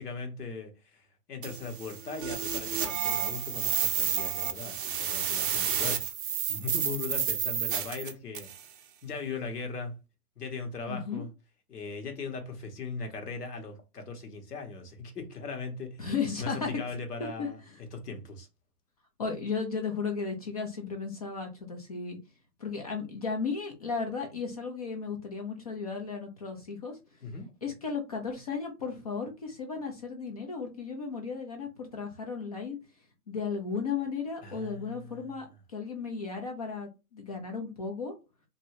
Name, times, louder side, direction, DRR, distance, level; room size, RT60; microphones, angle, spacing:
voice 1, 0.0-6.0 6.5-8.5 9.0-9.9 10.4-11.3 11.7-16.1 16.4-17.6 17.9-18.5 27.2-27.5 34.4-35.4, left 4 dB, 80° left, 1.2 m, -39 dB
sound 1, 1.4-8.6, right 8 dB, 35° right, 0.5 m, -31 dB
voice 2, 10.9-11.2 16.0-16.7 17.2-17.8 19.2-22.2 22.6-27.0 27.6-32.8 33.3-38.1, left 5 dB, 25° left, 0.4 m, -35 dB
2.7 x 2.7 x 3.0 m
hypercardioid pair, 130°, 46 cm